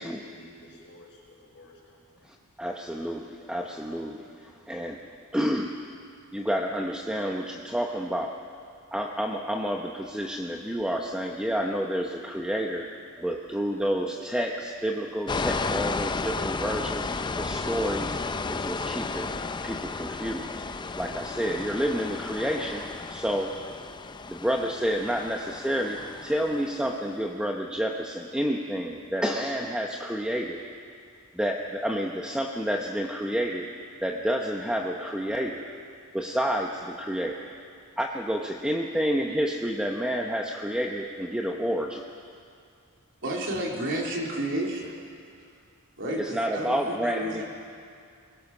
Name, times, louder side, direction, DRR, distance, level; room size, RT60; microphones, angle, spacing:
voice 1, 0.0-2.3 6.1-6.3, left 1 dB, 60° left, -2 dB, 5.4 m, -52 dB
voice 2, 2.2-5.0 5.3-5.7 6.3-8.4 8.9-12.9 13.2-19.3 19.6-20.5 21.0-23.5 24.3-30.6 31.3-33.7 34.0-35.6 36.1-37.5 38.0-42.1 46.2-47.5, equal, 5° right, 1 dB, 0.9 m, -29 dB
sound 1, 15.3-27.0, left 3 dB, 20° left, 0.5 m, -33 dB
voice 3, 43.2-45.0 46.0-47.5, right 1 dB, 60° right, -2 dB, 3.6 m, -31 dB
23.0 x 20.5 x 6.1 m, 2.3 s
head